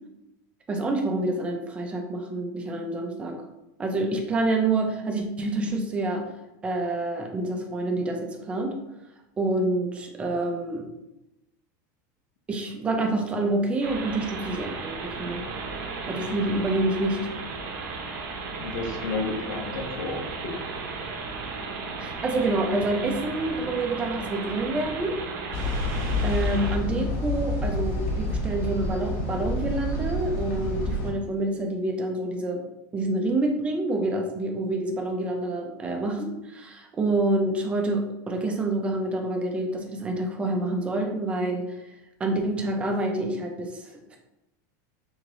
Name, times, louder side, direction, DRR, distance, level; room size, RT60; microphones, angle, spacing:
voice 1, 0.7-3.4 3.8-6.2 6.6-8.7 9.4-10.9 12.5-15.4 16.1-17.2 22.0-25.2 26.2-32.6 32.9-41.7 42.2-44.2, right 2 dB, 10° right, 3 dB, 0.4 m, -27 dB
sound 1, 13.8-26.8, right 4 dB, 65° right, 0.8 m, -35 dB
voice 2, 16.1-16.5 18.6-20.2, left 3 dB, 80° left, -2 dB, 1.1 m, -32 dB
sound 2, 25.5-31.1, left 2 dB, 45° left, 1.2 m, -28 dB
3.5 x 3.3 x 3.7 m, 0.94 s
supercardioid pair, 175°, 10 cm